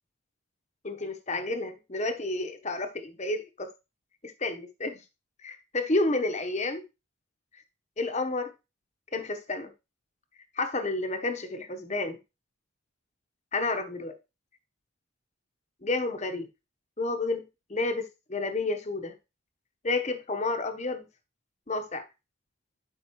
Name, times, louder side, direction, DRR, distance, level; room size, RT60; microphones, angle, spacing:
voice 1, 0.8-3.7 4.2-5.0 5.4-6.8 7.5-7.6 8.0-8.5 9.1-9.7 10.5-12.2 13.5-14.2 15.8-16.5 17.0-17.4 17.7-19.1 19.8-21.1 21.7-22.0, left 2 dB, 35° left, 1.0 m, -30 dB
11.5 x 5.4 x 3.1 m
head